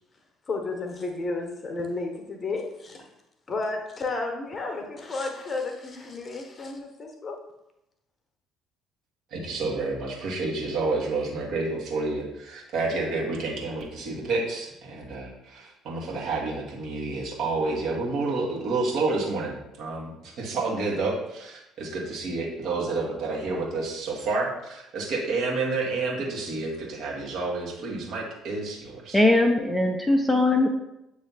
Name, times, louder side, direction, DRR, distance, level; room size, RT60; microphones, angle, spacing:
voice 1, 0.5-3.1 3.5-7.4, left 3 dB, 30° left, 3 dB, 1.1 m, -32 dB
voice 2, 9.3-29.2, right 3 dB, 55° right, -3 dB, 1.6 m, -29 dB
voice 3, 29.1-30.7, left 2 dB, 5° left, 3 dB, 0.7 m, -20 dB
7.9 x 3.1 x 4.1 m, 0.88 s
figure-of-eight pair, 50°, 0 cm